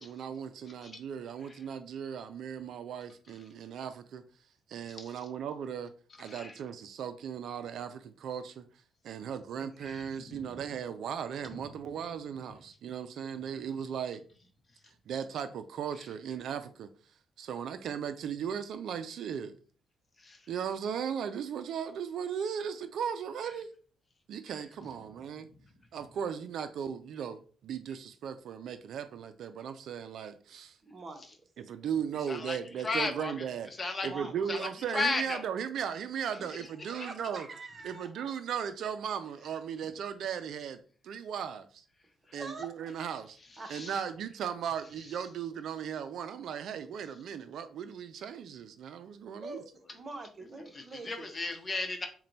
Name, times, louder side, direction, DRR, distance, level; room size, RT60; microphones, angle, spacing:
voice 1, 0.0-4.2 4.7-5.9 6.2-14.2 15.1-19.6 20.5-23.7 24.3-25.5 25.9-30.8 31.6-33.7 34.0-37.5 37.8-41.8 42.3-43.4 43.7-49.6, right 8 dB, 70° right, 0.4 m, -37 dB
voice 2, 30.8-31.2 34.0-34.3 36.9-38.1 42.4-42.7 43.6-43.9 49.3-51.3, right 3 dB, 40° right, 0.8 m, -44 dB
voice 3, 32.8-33.3 33.8-34.1 34.5-34.6 34.9-35.4 43.7-43.9 50.7-52.1, left 3 dB, 30° left, 0.8 m, -33 dB
4.2 x 2.2 x 4.0 m
cardioid pair, 90°, 0 cm